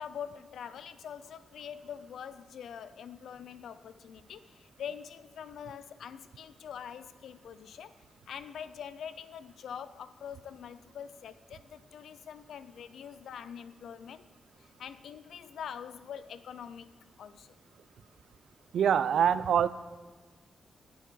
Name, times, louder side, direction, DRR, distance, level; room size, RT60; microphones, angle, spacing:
voice 1, 0.0-8.0 8.3-14.2 14.6-16.9 17.2-17.6, left 8 dB, 85° left, 14 dB, 0.6 m, -44 dB
voice 2, 18.7-19.7, right 8 dB, 75° right, 15 dB, 0.5 m, -24 dB
22.0 x 8.1 x 4.6 m, 1.4 s
wide cardioid pair, 175°, 0 cm